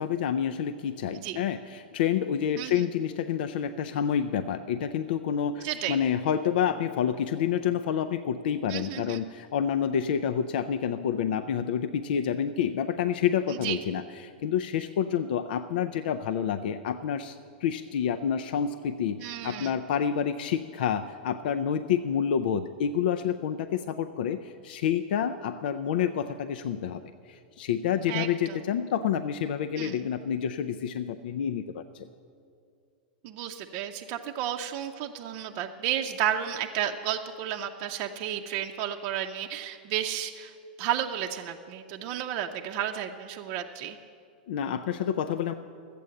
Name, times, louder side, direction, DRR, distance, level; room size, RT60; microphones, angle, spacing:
voice 1, 0.0-32.1 44.5-45.5, left 8 dB, 70° left, 9 dB, 0.4 m, -28 dB
voice 2, 5.6-6.0 8.7-9.2 13.5-13.8 19.2-19.7 28.1-28.6 29.8-30.0 33.2-40.5 40.8-44.0, right 10 dB, 45° right, 3 dB, 0.6 m, -32 dB
12.5 x 8.4 x 7.7 m, 2.4 s
hypercardioid pair, 125°, 5 cm